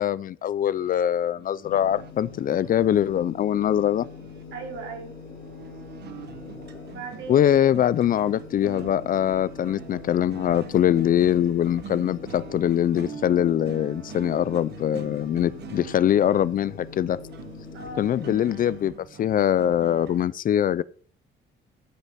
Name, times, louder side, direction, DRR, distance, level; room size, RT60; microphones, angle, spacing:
voice 1, 0.0-4.1 7.3-17.2 18.0-18.9 19.2-20.8, left 10 dB, 45° left, 0.4 m, -23 dB
sound 1, 0.6-20.3, right 8 dB, 55° right, 1.2 m, -44 dB
sound 2, 1.6-18.9, left 4 dB, 70° left, 4.1 m, -43 dB
voice 2, 4.5-5.2 6.9-7.5 17.7-18.1, right 4 dB, 80° right, 4.4 m, -37 dB
14.0 x 6.6 x 4.2 m
cardioid pair, 160°, 20 cm